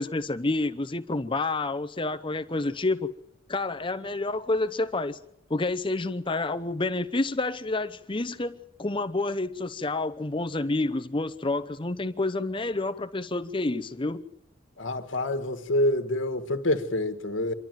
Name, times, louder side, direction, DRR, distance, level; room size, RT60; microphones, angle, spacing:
voice 1, 0.0-3.1 3.5-5.2 5.5-14.3, left 2 dB, 25° left, 0.8 m, -29 dB
voice 2, 14.8-17.5, left 1 dB, 75° left, 1.5 m, -27 dB
26.5 x 12.0 x 9.2 m
head